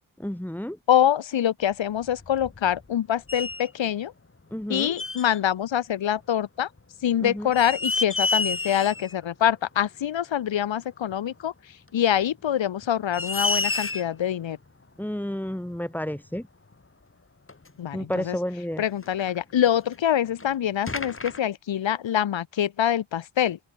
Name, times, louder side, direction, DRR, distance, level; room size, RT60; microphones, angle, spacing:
voice 1, 0.2-0.8 4.5-4.9 7.2-7.5 15.0-16.5 17.9-18.8, equal, 5° left, 5.9 m, -31 dB
voice 2, 0.9-4.1 4.7-6.7 7.0-11.5 11.9-14.6 17.8-18.4 18.8-23.6, left 10 dB, 70° left, 1.7 m, -25 dB
sound 1, 2.0-3.0 3.3-3.7 5.0-5.4 6.8-6.9 7.4-9.2 9.5-9.6 11.1-11.2 12.2-12.3 12.8-12.9 13.1-14.2 15.5-15.6 16.4-16.5 16.7-16.8 17.5-17.7 19.0-20.0 20.4-20.5 20.9-21.4, left 3 dB, 25° left, 7.7 m, -29 dB
open air
cardioid pair, 95°, 46 cm